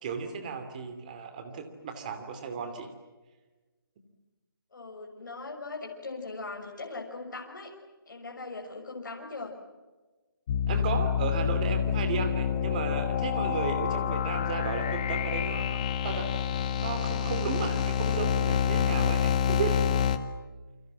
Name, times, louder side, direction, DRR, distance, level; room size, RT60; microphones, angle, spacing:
voice 1, 0.0-2.9 10.7-15.8 16.0-16.3 16.8-20.0, right 5 dB, 20° right, 7 dB, 2.8 m, -34 dB
voice 2, 4.7-7.7 8.1-9.5, left 3 dB, 55° left, 0 dB, 6.3 m, -40 dB
sound 1, 10.5-20.2, left 8 dB, 20° left, 0.9 m, -28 dB
29.5 x 25.5 x 7.5 m, 1.2 s
hypercardioid pair, 170°, 12 cm